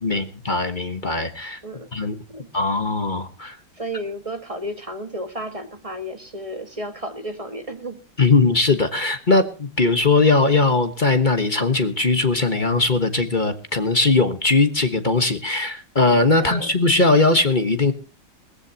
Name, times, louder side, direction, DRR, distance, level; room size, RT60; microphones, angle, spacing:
voice 1, 0.0-1.6 1.9-2.1 2.5-3.6 8.2-17.9, left 3 dB, 30° left, 8 dB, 1.1 m, -19 dB
voice 2, 3.8-8.0 16.4-16.7, right 1 dB, 20° right, 7 dB, 1.5 m, -32 dB
20.5 x 15.0 x 2.9 m, 0.36 s
omnidirectional pair, 2.2 m